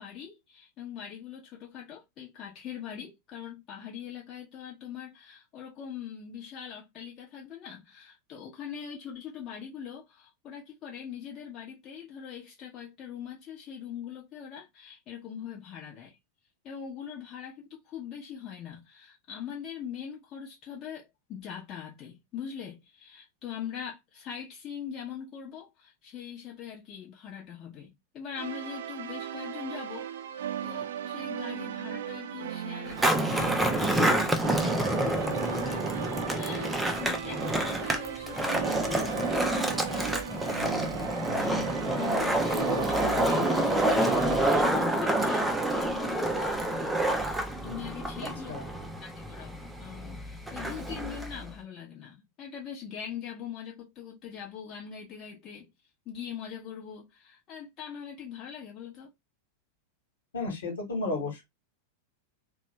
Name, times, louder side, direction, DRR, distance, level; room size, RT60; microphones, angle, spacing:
voice 1, 0.0-16.2 16.6-34.4 34.7-45.5 45.8-48.5 49.0-55.7 56.0-59.1, left 8 dB, 35° left, 1.0 m, -42 dB
sound 1, 28.4-44.5, right 10 dB, 60° right, 0.5 m, -37 dB
Skateboard, 32.9-51.5, right 1 dB, 5° right, 0.6 m, -28 dB
voice 2, 60.3-61.4, left 3 dB, 65° left, 1.4 m, -32 dB
3.0 x 2.3 x 3.1 m
figure-of-eight pair, 90°, 0 cm